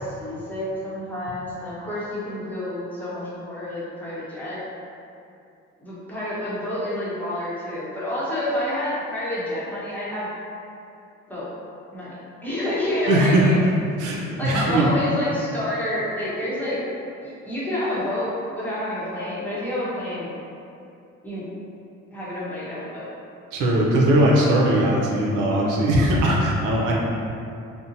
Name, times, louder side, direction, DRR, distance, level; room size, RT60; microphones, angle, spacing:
voice 1, 0.0-4.6 5.8-10.3 11.3-11.5 11.9-12.1 12.4-13.6 14.4-16.8 17.2-20.3 21.2-21.5 22.1-23.1, left 1 dB, 5° left, -10 dB, 0.9 m, -28 dB
voice 2, 13.1-13.5 14.0-14.9 23.5-26.9, right 1 dB, 90° right, -3 dB, 0.5 m, -19 dB
2.6 x 2.1 x 2.6 m, 2.6 s
cardioid pair, 90°, 30 cm